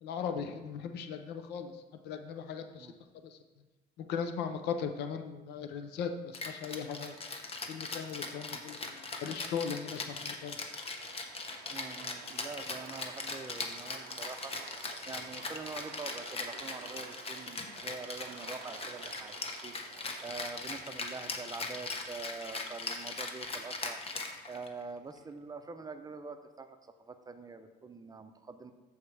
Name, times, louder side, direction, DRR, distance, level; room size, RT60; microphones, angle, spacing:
voice 1, 0.0-1.7 2.0-2.9 3.2-3.4 4.1-7.2 7.7-10.6, left 6 dB, 80° left, 7 dB, 0.7 m, -38 dB
Rattle (instrument), 6.3-24.8, left 3 dB, 35° left, 1.0 m, -40 dB
sound 1, 11.0-20.3, right 11 dB, 85° right, 0.5 m, -52 dB
voice 2, 11.7-19.7 20.2-24.0 24.5-28.7, right 4 dB, 20° right, 8 dB, 0.6 m, -45 dB
14.0 x 4.7 x 3.4 m, 1.2 s
cardioid pair, 110°, 17 cm